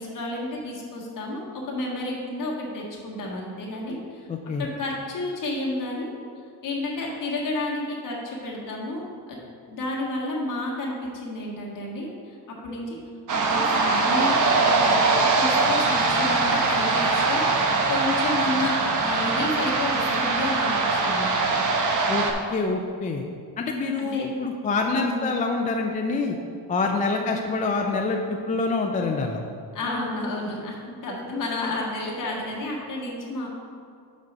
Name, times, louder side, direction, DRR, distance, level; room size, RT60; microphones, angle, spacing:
voice 1, 0.0-4.3 4.6-6.1 6.6-12.4 12.6-13.0 13.3-21.4 24.0-24.3 24.9-25.4 27.2-27.4 29.7-33.5, left 2 dB, 50° left, -3 dB, 1.7 m, -31 dB
voice 2, 4.3-4.7 22.1-22.2 22.5-23.2 23.6-26.4 26.7-29.4, left 3 dB, 20° left, 2 dB, 0.3 m, -26 dB
sound 1, 13.3-22.3, right 3 dB, 45° right, 0.9 m, -22 dB
5.3 x 5.2 x 6.1 m, 2.3 s
cardioid pair, 135°, 40 cm